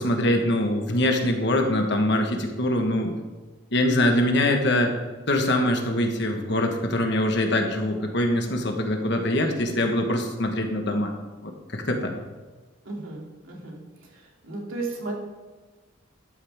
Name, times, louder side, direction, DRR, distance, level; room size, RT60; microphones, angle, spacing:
voice 1, 0.0-3.1 3.7-4.9 5.3-11.1 11.4-12.1, left 1 dB, 55° left, 3 dB, 1.4 m, -23 dB
voice 2, 12.8-13.8 14.1-15.1, right 3 dB, 85° right, -2 dB, 2.8 m, -34 dB
12.5 x 9.2 x 3.6 m, 1.3 s
head